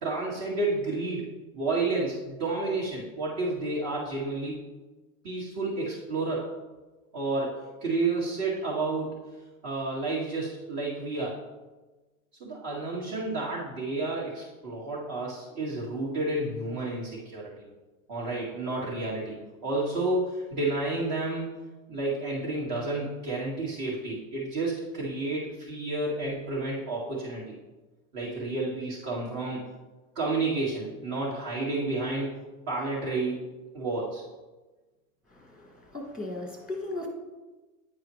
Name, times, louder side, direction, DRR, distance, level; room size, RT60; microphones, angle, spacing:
voice 1, 0.0-1.3 1.5-4.6 5.2-6.4 7.1-9.2 9.6-11.4 12.4-17.7 18.1-19.4 19.6-21.5 21.9-27.4 28.1-29.6 30.2-32.3 32.7-33.4 33.7-34.2, right 2 dB, 45° right, -6 dB, 2.0 m, -30 dB
voice 2, 35.3-37.1, left 2 dB, ahead, 1 dB, 1.4 m, -37 dB
9.6 x 4.8 x 3.1 m, 1.2 s
supercardioid pair, 115°, 44 cm